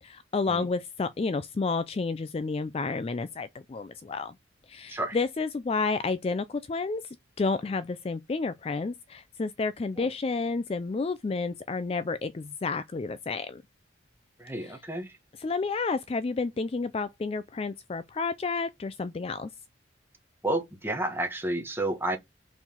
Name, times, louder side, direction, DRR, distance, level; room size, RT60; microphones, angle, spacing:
voice 1, 0.0-4.3 4.7-7.0 7.4-13.6 14.6-14.7 15.4-19.5, left 4 dB, 30° left, 0.3 m, -30 dB
voice 2, 14.4-15.2 20.4-22.2, right 1 dB, 10° right, 1.2 m, -31 dB
5.6 x 4.5 x 4.3 m
head